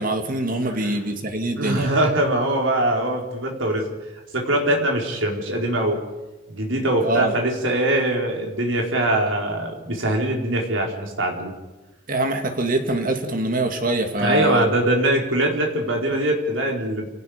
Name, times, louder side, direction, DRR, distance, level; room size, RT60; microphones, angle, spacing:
voice 1, 0.0-1.9 7.0-7.3 12.1-14.7, right 1 dB, 45° right, 5 dB, 2.4 m, -24 dB
voice 2, 0.6-1.0 1.6-3.8 4.3-6.0 6.5-11.5 14.2-17.1, right 1 dB, 80° right, 1 dB, 4.6 m, -22 dB
29.5 x 18.0 x 5.2 m, 1.1 s
head